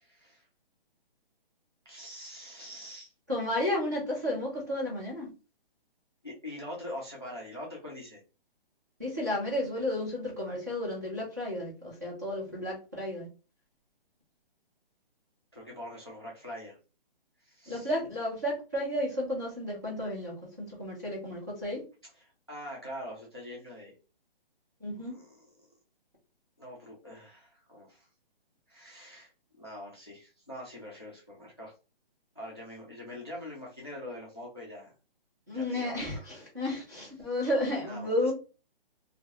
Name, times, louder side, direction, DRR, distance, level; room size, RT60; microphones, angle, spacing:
voice 1, 0.1-0.4 1.9-3.1 6.2-8.2 15.5-16.8 17.4-17.9 22.1-24.0 25.1-25.4 26.6-28.1 28.7-29.3 29.6-31.7 32.4-34.9 35.5-36.3 37.2-37.3 37.9-38.3, left 1 dB, 25° left, -3 dB, 0.4 m, -44 dB
voice 2, 3.3-5.3 9.0-13.3 17.7-21.8 24.8-25.1 35.5-38.3, left 1 dB, 20° right, -6 dB, 0.6 m, -32 dB
2.2 x 2.2 x 2.7 m, 0.32 s
hypercardioid pair, 180°, 29 cm